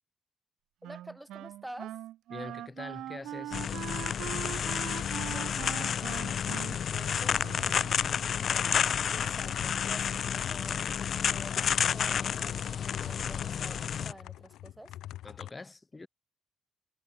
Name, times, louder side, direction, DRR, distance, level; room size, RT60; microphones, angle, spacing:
voice 1, 0.8-1.9 5.3-14.9, right 1 dB, 5° right, 3.5 m, -50 dB
Wind instrument woodwind instrument, 0.8-8.3, right 13 dB, 80° right, 0.6 m, -42 dB
voice 2, 2.3-3.6 13.2-13.3 15.2-16.1, left 3 dB, 25° left, 1.8 m, -44 dB
sound 1, 3.5-14.1, left 8 dB, 55° left, 0.7 m, -30 dB
sound 2, 3.9-15.5, left 13 dB, 85° left, 1.3 m, -47 dB
cardioid pair, 90°, 0 cm